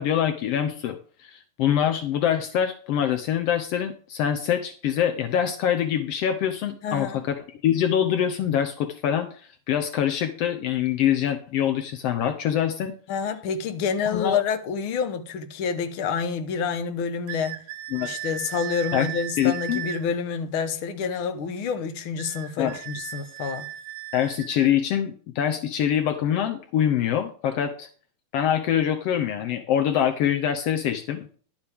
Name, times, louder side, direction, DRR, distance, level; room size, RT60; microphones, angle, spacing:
voice 1, 0.0-12.9 14.1-14.4 17.9-18.1 18.9-19.1 19.4-19.8 22.6-22.8 24.1-27.9 28.3-31.3, left 9 dB, 90° left, 1.3 m, -24 dB
voice 2, 6.8-7.2 13.1-17.5 18.0-23.7, left 6 dB, 70° left, 1.2 m, -28 dB
sound 1, 17.3-20.0 22.2-24.7, right 12 dB, 70° right, 2.2 m, -36 dB
11.5 x 9.4 x 3.5 m
omnidirectional pair, 3.9 m